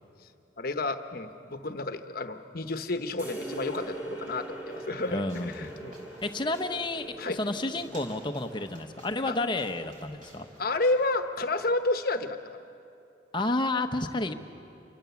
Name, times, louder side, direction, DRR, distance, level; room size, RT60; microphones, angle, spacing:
voice 1, 0.6-6.1 7.2-7.4 9.3-9.4 10.6-12.4, left 2 dB, 50° left, 8 dB, 1.1 m, -30 dB
sound 1, 3.2-10.7, right 2 dB, 10° right, 3.8 m, -42 dB
sound 2, 3.5-11.7, right 1 dB, 40° right, 5.0 m, -55 dB
voice 2, 5.1-5.8 6.2-10.5 13.3-14.3, left 2 dB, 25° left, 7 dB, 0.9 m, -31 dB
27.0 x 24.0 x 7.1 m, 2.6 s
head